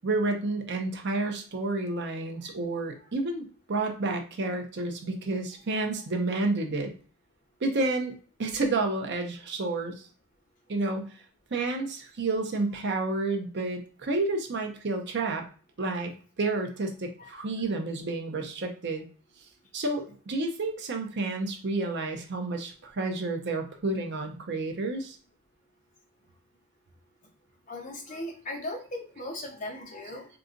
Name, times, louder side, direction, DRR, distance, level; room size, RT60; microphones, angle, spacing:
voice 1, 0.0-6.9 7.6-8.1 8.4-9.9 10.7-11.1 11.5-15.4 15.8-16.1 16.4-19.0 19.7-25.2, right 2 dB, 50° right, 4 dB, 0.6 m, -30 dB
voice 2, 27.7-30.3, left 1 dB, 35° left, 0 dB, 0.9 m, -38 dB
3.8 x 2.3 x 2.5 m, 0.39 s
head